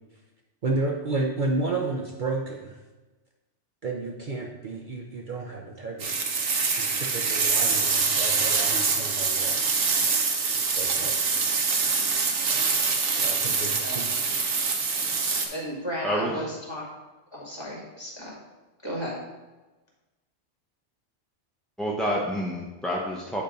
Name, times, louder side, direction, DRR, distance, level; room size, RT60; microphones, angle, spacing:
voice 1, 0.6-2.8 3.8-6.3 6.8-10.2 10.8-11.4 13.1-14.0, right 3 dB, 50° right, -1 dB, 0.8 m, -32 dB
sound 1, 6.0-15.5, right 5 dB, 75° right, 1.2 m, -25 dB
voice 2, 15.5-16.8 17.3-18.3 18.8-19.2, equal, 20° left, -4 dB, 2.1 m, -34 dB
voice 3, 16.0-16.4 21.8-23.4, equal, ahead, -3 dB, 0.5 m, -28 dB
9.2 x 3.4 x 5.1 m, 1.2 s
omnidirectional pair, 1.2 m